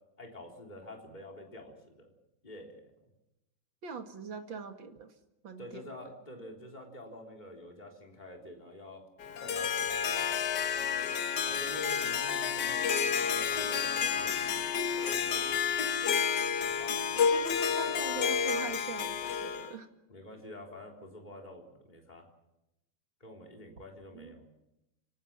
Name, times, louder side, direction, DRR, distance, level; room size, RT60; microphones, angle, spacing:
voice 1, 0.2-2.1 2.4-3.1 5.6-9.0 9.4-10.3 11.4-14.7 15.1-15.6 16.6-17.0 20.1-22.3 23.2-24.4, left 1 dB, 20° left, 1 dB, 3.9 m, -48 dB
voice 2, 3.8-5.1 5.4-5.9 17.3-19.9 24.1-24.3, right 4 dB, 90° right, 6 dB, 2.8 m, -42 dB
Harp, 9.2-19.7, left 7 dB, 65° left, 1.7 m, -30 dB
26.0 x 18.5 x 7.4 m, 0.91 s
omnidirectional pair, 2.0 m